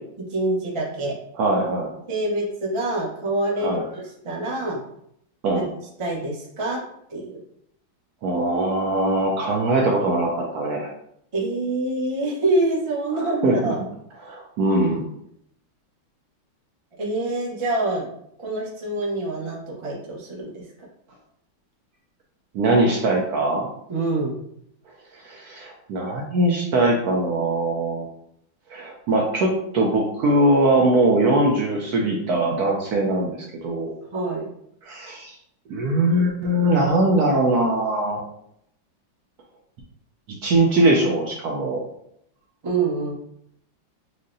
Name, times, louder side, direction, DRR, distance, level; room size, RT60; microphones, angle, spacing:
voice 1, 0.3-1.1 2.1-4.8 5.5-5.6 6.0-6.8 7.1-7.3 11.3-13.8 17.0-18.1 18.4-20.6 23.9-24.3 34.1-34.5 42.6-43.1, right 2 dB, 45° right, -4 dB, 0.4 m, -26 dB
voice 2, 1.4-1.9 3.6-3.8 5.4-5.7 8.2-10.9 13.1-13.7 14.2-15.0 22.5-23.7 25.2-28.1 28.7-33.9 34.9-35.4 35.7-38.2 40.4-41.8, right 2 dB, 70° right, -1 dB, 0.9 m, -21 dB
6.4 x 2.1 x 2.6 m, 0.73 s
omnidirectional pair, 2.1 m